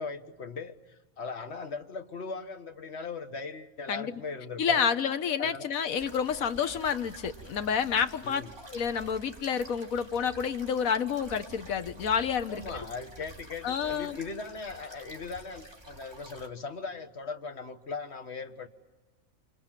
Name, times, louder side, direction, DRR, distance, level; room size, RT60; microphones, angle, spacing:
voice 1, 0.0-4.9 5.4-5.7 8.2-8.5 12.5-18.7, left 4 dB, 50° left, 7 dB, 1.7 m, -39 dB
voice 2, 3.9-4.2 4.6-12.8 13.6-14.2, left 7 dB, 75° left, 10 dB, 1.5 m, -29 dB
sound 1, 6.0-16.5, right 2 dB, 15° right, 3.3 m, -49 dB
27.5 x 27.5 x 7.5 m, 1.2 s
omnidirectional pair, 1.5 m